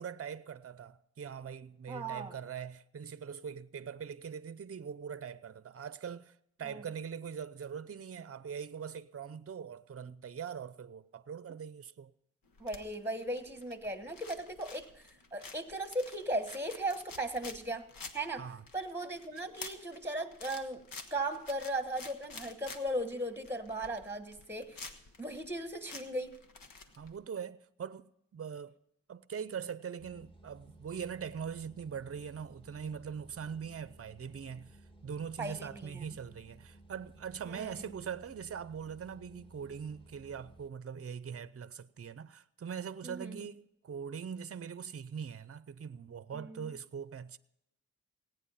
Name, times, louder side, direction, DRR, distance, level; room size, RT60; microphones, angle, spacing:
voice 1, 0.0-12.1 18.4-18.6 27.0-28.8 29.1-47.4, right 7 dB, 45° right, 0.6 m, -42 dB
voice 2, 1.9-2.3 6.6-6.8 12.6-17.9 18.1-18.5 18.7-20.8 21.1-24.9 25.2-26.4 35.4-36.0 37.4-37.8 43.0-43.4 46.3-46.7, right 1 dB, 5° right, 1.3 m, -37 dB
sound 1, 12.5-27.1, left 4 dB, 75° left, 1.4 m, -50 dB
sound 2, 30.0-40.7, right 2 dB, 15° left, 1.7 m, -58 dB
17.5 x 9.3 x 5.7 m
cardioid pair, 60°, 34 cm